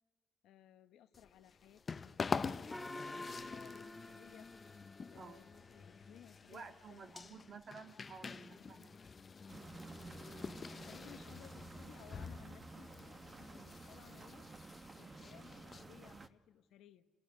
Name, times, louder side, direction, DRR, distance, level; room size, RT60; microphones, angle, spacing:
voice 1, 0.4-4.5 5.1-7.5 10.7-14.5 15.0-17.1, left 11 dB, 85° left, 11 dB, 0.9 m, -60 dB
sound 1, 1.1-16.3, left 5 dB, 35° left, 0.6 m, -46 dB
Gong, 2.7-5.6, left 1 dB, 5° left, 1.0 m, -49 dB
voice 2, 6.5-9.0, right 5 dB, 50° right, 7 dB, 1.9 m, -53 dB
sound 2, 9.5-16.3, right 3 dB, 30° right, 1.0 m, -52 dB
30.0 x 12.5 x 9.8 m, 1.4 s
cardioid pair, 90°, 0 cm